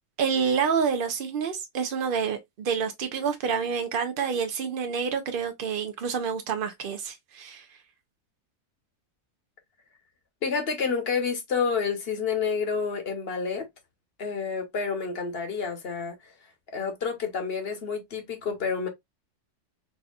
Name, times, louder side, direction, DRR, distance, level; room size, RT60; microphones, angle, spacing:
voice 1, 0.2-7.6, right 6 dB, 70° right, 0.5 m, -28 dB
voice 2, 10.4-13.7 14.2-16.3 16.7-18.9, left 5 dB, 45° left, 1.1 m, -29 dB
4.4 x 2.7 x 2.3 m
omnidirectional pair, 1.6 m